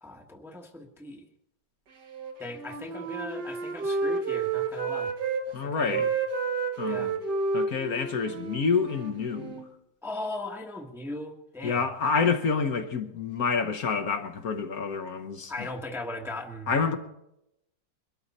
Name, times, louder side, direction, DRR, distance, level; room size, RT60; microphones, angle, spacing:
voice 1, 0.0-1.3 2.4-5.1 5.5-6.1 6.9-7.1 10.0-11.8 15.5-16.7, left 2 dB, ahead, 1.1 m, -38 dB
Wind instrument woodwind instrument, 2.1-5.4 5.8-9.7, right 4 dB, 75° right, 2.4 m, -31 dB
voice 2, 5.5-6.1 6.8-7.2 7.5-9.6 11.6-15.5 16.7-17.0, left 5 dB, 60° left, 1.4 m, -28 dB
22.5 x 13.0 x 4.2 m
omnidirectional pair, 1.9 m